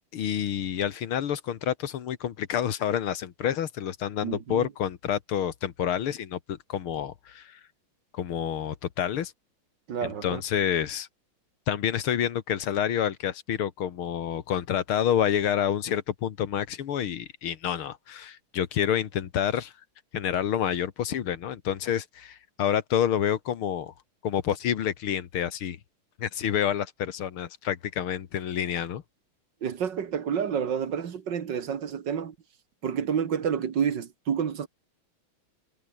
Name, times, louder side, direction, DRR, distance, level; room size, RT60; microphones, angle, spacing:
voice 1, 0.1-7.6 8.1-9.3 10.0-11.1 11.7-19.7 20.1-23.9 24.2-25.8 26.2-29.0, left 9 dB, 90° left, 2.3 m, -28 dB
voice 2, 4.2-4.7 9.9-10.4 29.6-32.3 32.8-34.7, right 7 dB, 60° right, 2.1 m, -29 dB
omnidirectional pair, 2.3 m